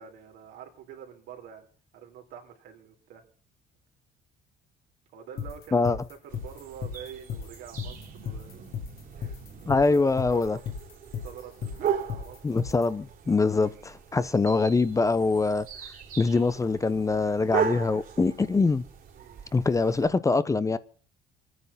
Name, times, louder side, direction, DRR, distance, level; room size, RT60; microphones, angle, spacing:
voice 1, 0.0-1.7 1.9-3.2 5.1-8.6 9.6-10.7 11.0-12.7 19.1-19.4, right 8 dB, 85° right, 3.6 m, -46 dB
sound 1, 5.4-12.9, left 7 dB, 65° left, 2.7 m, -35 dB
sound 2, 6.3-20.1, right 7 dB, 60° right, 3.1 m, -37 dB
voice 2, 9.7-10.6 12.4-15.7 16.2-18.8 19.5-20.8, left 3 dB, 20° left, 0.7 m, -24 dB
24.5 x 9.6 x 5.7 m
cardioid pair, 110°, 17 cm